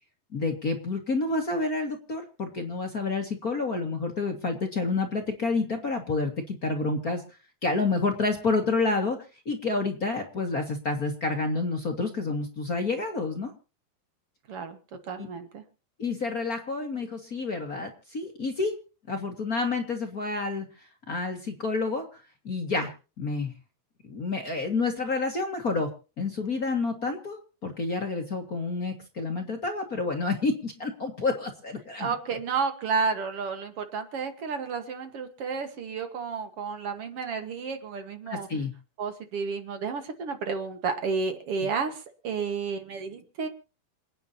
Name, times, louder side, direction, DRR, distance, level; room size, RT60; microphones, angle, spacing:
voice 1, 0.3-7.2 7.6-9.2 9.4-13.5 15.2-15.3 16.0-18.8 19.1-20.7 21.1-22.9 23.2-23.5 24.0-25.9 26.2-32.1 38.3-38.7, left 3 dB, 40° left, 3 dB, 1.4 m, -29 dB
voice 2, 15.0-15.6 32.0-38.5 39.0-43.5, right 5 dB, 55° right, 7 dB, 1.9 m, -31 dB
27.5 x 9.4 x 2.8 m, 0.34 s
omnidirectional pair, 4.2 m